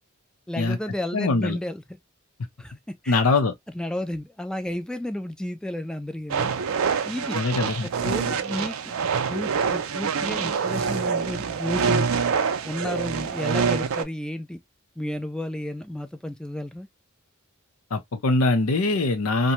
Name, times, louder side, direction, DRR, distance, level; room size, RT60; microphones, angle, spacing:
voice 1, 0.5-1.8 2.6-3.2 3.7-6.5 7.0-7.4 8.0-8.8 9.3-12.1 12.6-14.6 15.0-16.9, left 1 dB, 5° left, 0.3 m, -32 dB
voice 2, 1.1-1.6 3.1-3.5 7.3-8.1 17.9-19.5, left 3 dB, 85° left, 0.7 m, -23 dB
sound 1, 6.3-14.0, right 6 dB, 75° right, 0.4 m, -26 dB
2.6 x 2.2 x 2.8 m
head